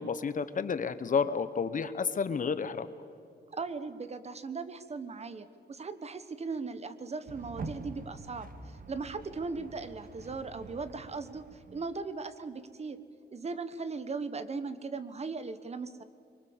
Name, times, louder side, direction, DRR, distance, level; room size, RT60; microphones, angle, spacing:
voice 1, 0.0-2.9, left 5 dB, 50° left, 13 dB, 1.0 m, -31 dB
voice 2, 3.5-11.5 11.7-13.0 13.3-16.0, right 4 dB, 35° right, 12 dB, 1.1 m, -38 dB
sound 1, 7.3-12.1, right 3 dB, 55° right, 1.6 m, -46 dB
25.0 x 23.0 x 7.2 m, 2.5 s
wide cardioid pair, 165°, 18 cm